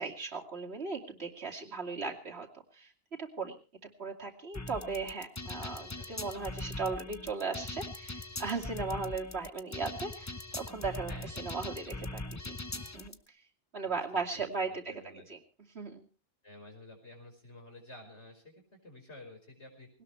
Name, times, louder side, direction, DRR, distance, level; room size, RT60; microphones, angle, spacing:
voice 1, 0.0-2.5 2.7-2.9 3.2-3.6 4.0-12.4 12.8-13.1 13.7-15.4 15.7-16.1, right 4 dB, 60° right, 1 dB, 2.9 m, -37 dB
sound 1, 4.5-13.1, left 2 dB, 20° left, 0.6 m, -41 dB
voice 2, 5.6-6.1 11.1-11.5 13.9-15.3 16.4-19.9, left 1 dB, 70° left, 3 dB, 5.7 m, -52 dB
20.0 x 18.5 x 3.3 m, 0.35 s
omnidirectional pair, 1.2 m